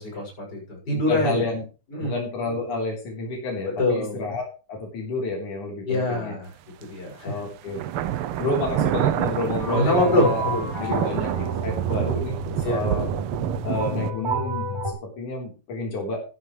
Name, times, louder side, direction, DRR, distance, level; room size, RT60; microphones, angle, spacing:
voice 1, 0.0-1.4 1.9-2.2 3.7-4.2 5.8-6.5 6.8-7.4 9.7-11.1 12.6-12.8, left 1 dB, 30° left, 0 dB, 7.0 m, -25 dB
voice 2, 0.9-1.6 2.0-6.4 7.2-7.8 8.4-10.5 10.8-12.4 12.7-13.1 13.6-16.2, left 2 dB, 85° left, -1 dB, 5.4 m, -30 dB
sound 1, 6.8-6.9 7.7-14.1, right 11 dB, 90° right, 1.2 m, -28 dB
sound 2, 9.6-14.9, right 2 dB, 10° right, 3.3 m, -30 dB
15.0 x 11.5 x 3.3 m, 0.33 s
omnidirectional pair, 3.4 m